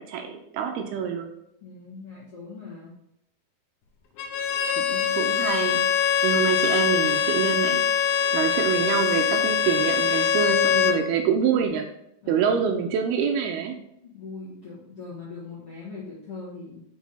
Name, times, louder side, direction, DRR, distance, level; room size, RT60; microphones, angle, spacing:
voice 1, 0.0-1.3 4.8-11.9 12.3-13.8, right 7 dB, 80° right, 4 dB, 2.4 m, -26 dB
voice 2, 1.6-3.0 12.2-12.6 14.0-16.8, left 4 dB, 45° left, -9 dB, 2.2 m, -40 dB
Bowed string instrument, 4.2-11.0, left 8 dB, 75° left, 2.6 m, -23 dB
6.1 x 5.6 x 4.1 m, 0.77 s
omnidirectional pair, 4.9 m